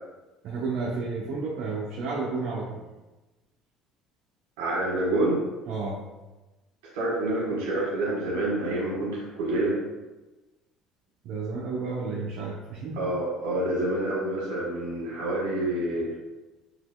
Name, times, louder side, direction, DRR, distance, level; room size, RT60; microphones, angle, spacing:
voice 1, 0.4-2.8 5.7-6.0 11.2-13.0, right 4 dB, 70° right, -5 dB, 0.7 m, -31 dB
voice 2, 4.6-5.4 6.9-9.7 13.0-16.1, right 1 dB, 90° right, -4 dB, 1.4 m, -27 dB
5.8 x 2.9 x 2.3 m, 1.1 s
supercardioid pair, 95°, 0 cm